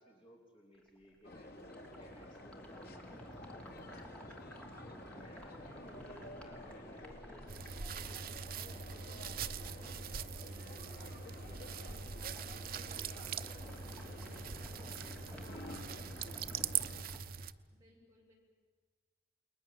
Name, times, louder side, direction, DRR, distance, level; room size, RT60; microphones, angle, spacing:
voice 1, 0.0-4.2 4.8-10.0 10.4-16.6, equal, 30° left, 0 dB, 3.5 m, -60 dB
sound 1, 0.7-11.1 11.4-11.9 12.2-17.2, equal, 5° left, 3.1 m, -54 dB
sound 2, 1.2-17.0, left 1 dB, 55° left, 2.8 m, -52 dB
voice 2, 4.8-5.8 17.7-18.3, left 1 dB, 15° right, -3 dB, 7.6 m, -65 dB
sound 3, 7.5-17.5, right 7 dB, 55° right, 0.8 m, -42 dB
29.5 x 21.5 x 7.6 m, 1.5 s
head